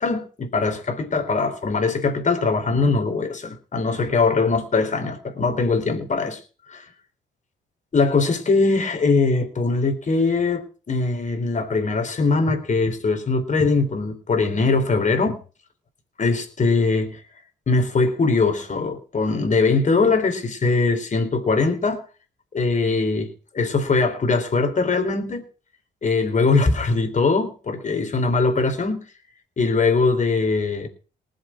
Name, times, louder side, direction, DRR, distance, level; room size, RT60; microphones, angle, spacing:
voice 1, 0.0-6.4 6.7-6.8 7.9-15.4 16.2-17.2 17.7-22.0 22.5-25.4 26.0-29.0 29.6-30.9, left 3 dB, 40° left, 3.9 m, -21 dB
19.5 x 7.7 x 6.0 m
cardioid pair, 90°, 20 cm